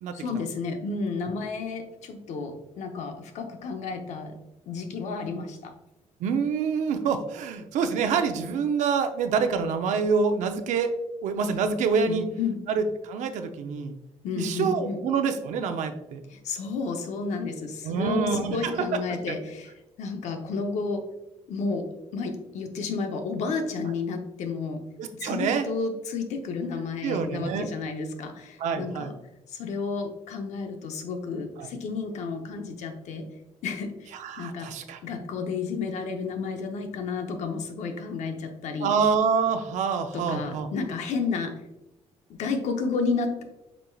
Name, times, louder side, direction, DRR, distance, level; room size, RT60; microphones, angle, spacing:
voice 1, 0.1-4.4 4.7-5.7 12.1-12.6 14.2-15.0 16.3-21.0 21.5-21.9 22.1-24.8 25.1-29.1 29.5-33.3 33.6-34.1 34.4-34.7 35.0-39.0 40.1-41.5 42.3-43.4, left 4 dB, 70° left, 5 dB, 0.7 m, -31 dB
voice 2, 6.2-10.9 11.2-12.2 12.7-13.9 14.4-16.2 17.8-19.0 25.0-25.7 27.0-27.7 28.6-29.1 31.6-31.7 34.2-35.0 38.8-40.7, right 5 dB, 80° right, 8 dB, 0.6 m, -26 dB
5.2 x 4.4 x 2.3 m, 0.94 s
cardioid pair, 175°, 12 cm